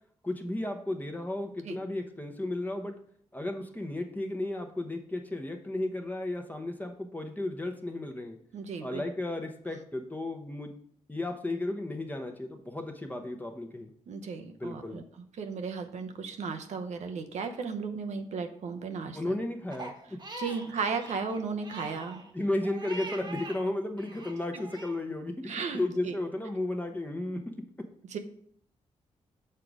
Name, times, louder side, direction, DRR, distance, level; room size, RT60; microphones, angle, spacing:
voice 1, 0.2-2.9 3.3-8.4 8.8-10.7 11.1-13.9 14.6-15.0 19.1-20.2 22.3-27.4, left 2 dB, 15° left, 4 dB, 0.9 m, -34 dB
voice 2, 8.5-9.0 14.1-15.0 15.4-19.4 20.4-22.2 25.5-26.1 28.1-28.2, right 5 dB, 75° right, 6 dB, 0.8 m, -35 dB
Crying sobbing, 19.7-23.6 24.0-25.0, right 2 dB, 40° right, 1.2 m, -43 dB
6.7 x 3.8 x 4.8 m, 0.63 s
cardioid pair, 65°, 12 cm